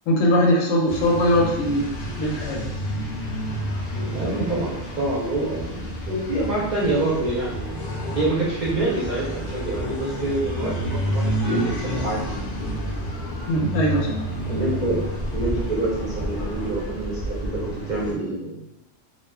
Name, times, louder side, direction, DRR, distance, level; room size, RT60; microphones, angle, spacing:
voice 1, 0.1-1.9 2.2-2.6 13.5-14.2, equal, 85° left, -1 dB, 1.0 m, -20 dB
sound 1, 0.9-18.1, equal, 60° left, 0.6 m, -30 dB
voice 2, 3.9-7.9 8.1-12.5 14.5-15.0 15.3-17.5 17.9-18.6, right 2 dB, 50° right, -8 dB, 0.5 m, -26 dB
2.3 x 2.3 x 2.2 m, 0.92 s
omnidirectional pair, 1.3 m